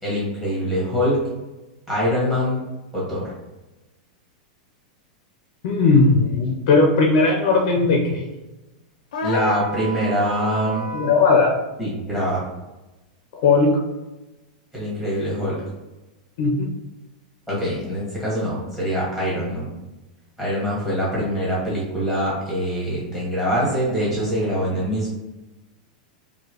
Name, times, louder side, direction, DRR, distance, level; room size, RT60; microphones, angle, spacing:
voice 1, 0.0-1.2 1.9-2.6 2.9-3.3 9.2-10.9 11.8-12.4 14.7-15.6 17.5-19.7 20.4-25.1, equal, 5° right, -7 dB, 1.3 m, -24 dB
voice 2, 5.6-8.3 10.9-11.5 13.4-13.8 16.4-16.7, left 3 dB, 45° left, 0 dB, 0.6 m, -17 dB
sound 1, 9.1-11.3, equal, 85° left, 0.6 m, -29 dB
4.9 x 2.7 x 2.9 m, 1.1 s
supercardioid pair, 180°, 4 cm